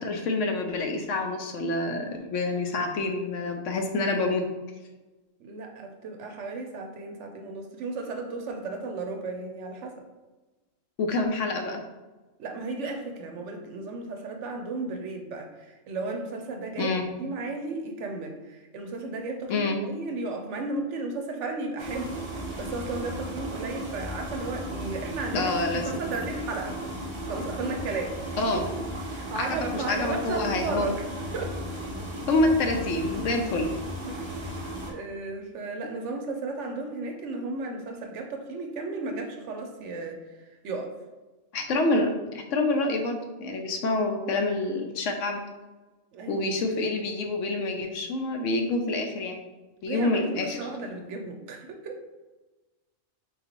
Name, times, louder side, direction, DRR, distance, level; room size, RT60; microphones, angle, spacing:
voice 1, 0.0-4.4 11.0-11.8 16.8-17.1 19.5-19.8 25.3-25.9 28.4-28.6 29.4-30.9 32.3-33.7 41.5-45.4 46.3-49.4 49.8-50.6, left 2 dB, 70° left, 4 dB, 0.9 m, -27 dB
voice 2, 5.4-10.0 12.4-16.9 17.2-26.8 27.2-28.2 28.5-28.6 29.1-31.0 31.3-31.6 34.1-34.5 34.9-40.9 46.1-46.4 49.9-52.0, right 3 dB, 65° right, 3 dB, 0.8 m, -34 dB
sound 1, 21.8-34.9, equal, 35° right, 0.4 m, -35 dB
3.9 x 3.8 x 2.9 m, 1.2 s
omnidirectional pair, 1.4 m